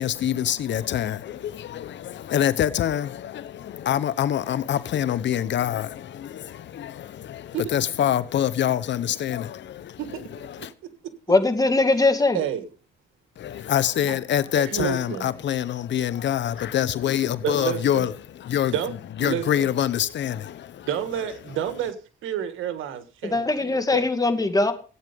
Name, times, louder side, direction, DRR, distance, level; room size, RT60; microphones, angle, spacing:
voice 1, 0.0-10.7 13.4-18.7 19.2-20.9, left 10 dB, 65° left, 1.0 m, -26 dB
voice 2, 10.0-11.1 12.3-12.7 14.1-14.2 14.6-15.3 17.4-18.1 18.7-19.7 20.9-22.0 22.2-24.1, right 9 dB, 85° right, 1.7 m, -30 dB
voice 3, 11.3-12.4 23.2-24.7, left 2 dB, 20° left, 2.3 m, -21 dB
15.5 x 9.0 x 5.3 m
cardioid pair, 90°, 20 cm